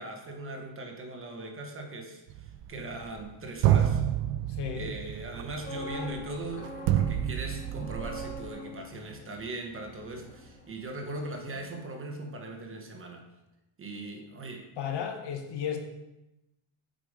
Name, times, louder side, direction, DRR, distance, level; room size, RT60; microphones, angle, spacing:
voice 1, 0.0-4.0 4.8-13.2 13.8-14.7, right 2 dB, 25° right, 3 dB, 1.0 m, -39 dB
sound 1, 2.3-3.3 3.6-8.5, right 11 dB, 85° right, 0.6 m, -28 dB
voice 2, 4.5-4.9 14.8-15.8, left 8 dB, 55° left, 5 dB, 1.3 m, -33 dB
sound 2, 5.3-11.2 11.5-11.8, left 2 dB, 15° left, 1.1 m, -44 dB
7.6 x 4.9 x 5.0 m, 0.94 s
cardioid pair, 140°, 49 cm